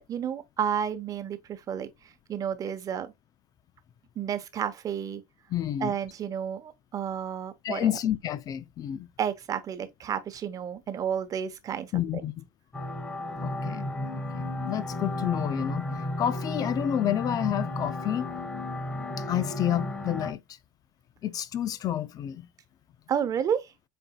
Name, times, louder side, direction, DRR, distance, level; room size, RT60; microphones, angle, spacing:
voice 1, 0.0-3.1 4.2-5.2 5.8-7.9 9.2-12.2 23.1-23.7, right 8 dB, 35° right, 0.9 m, -31 dB
voice 2, 5.5-5.9 7.6-9.1 11.9-12.4 13.4-15.9 16.2-18.4 19.2-20.4 21.2-22.5, left 10 dB, 35° left, 0.4 m, -30 dB
sound 1, 12.7-20.3, left 1 dB, 15° left, 1.7 m, -33 dB
7.7 x 2.6 x 2.3 m
hypercardioid pair, 100°, 10 cm